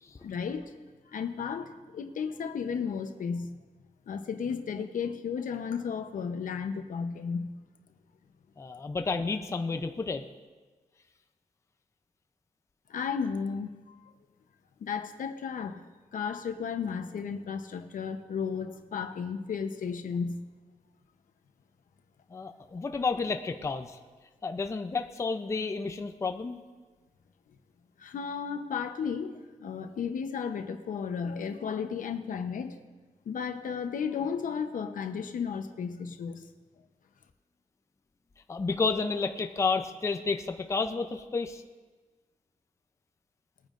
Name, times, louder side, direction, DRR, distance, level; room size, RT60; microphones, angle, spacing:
voice 1, 0.2-0.7 1.1-3.6 4.1-7.5 12.9-14.1 14.8-15.8 16.1-20.4 28.0-32.8 33.3-36.5, left 6 dB, 75° left, 8 dB, 0.8 m, -34 dB
voice 2, 8.6-10.2 22.3-24.0 24.4-26.6 38.5-41.6, left 4 dB, 20° left, 7 dB, 0.5 m, -31 dB
21.0 x 9.0 x 2.5 m, 1.3 s
wide cardioid pair, 170°, 14 cm